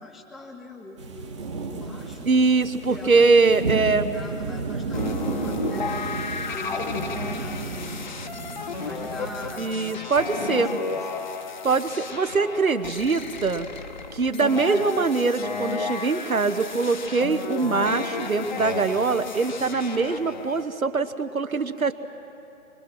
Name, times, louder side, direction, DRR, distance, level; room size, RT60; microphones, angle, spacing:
voice 1, 0.0-2.3 2.9-3.3 3.7-6.1 6.5-10.0 10.4-11.3 11.7-11.9 21.5-21.6, left 2 dB, ahead, 2 dB, 0.4 m, -42 dB
sound 1, 1.0-9.5, right 4 dB, 20° right, 1.1 m, -32 dB
voice 2, 2.3-4.1 9.6-10.7 11.6-13.7 14.1-21.9, right 4 dB, 75° right, 11 dB, 1.2 m, -23 dB
sound 2, 4.9-20.6, left 4 dB, 35° left, 0.8 m, -33 dB
24.0 x 23.5 x 6.1 m, 2.9 s
figure-of-eight pair, 145°, 42 cm